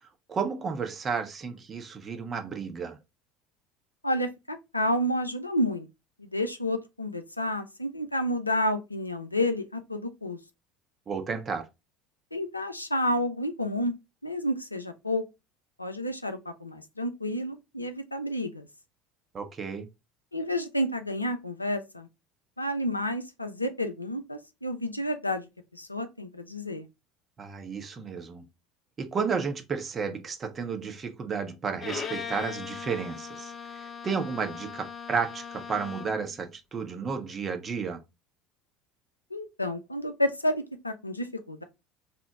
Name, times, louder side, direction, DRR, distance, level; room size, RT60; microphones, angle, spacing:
voice 1, 0.3-3.0 11.1-11.6 19.3-19.9 27.4-28.4 29.0-33.5 33.8-38.0, right 5 dB, 30° right, 0.6 m, -32 dB
voice 2, 4.0-5.9 6.2-10.4 12.3-13.9 14.2-15.2 15.8-18.7 20.3-22.1 22.6-26.9 39.3-41.6, left 1 dB, 85° left, 0.3 m, -30 dB
Bowed string instrument, 31.8-36.3, left 6 dB, 25° left, 0.5 m, -39 dB
2.9 x 2.0 x 3.5 m
figure-of-eight pair, 65°, 0 cm